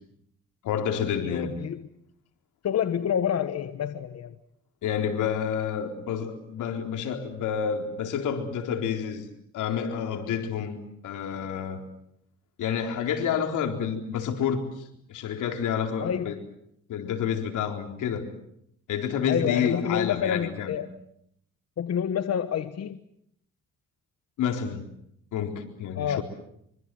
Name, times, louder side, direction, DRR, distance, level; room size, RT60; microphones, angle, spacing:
voice 1, 0.6-1.6 4.8-9.3 9.5-10.8 11.0-11.8 12.6-14.8 15.1-16.4 16.9-18.3 18.9-20.8 24.4-24.8 25.3-26.2, left 7 dB, 80° left, 4 dB, 4.2 m, -29 dB
voice 2, 1.2-1.8 2.6-4.3 16.0-16.4 19.3-20.9 21.8-23.0 26.0-26.2, left 9 dB, 55° left, 10 dB, 1.3 m, -28 dB
25.5 x 25.5 x 7.8 m, 0.74 s
cardioid pair, 90°, 30 cm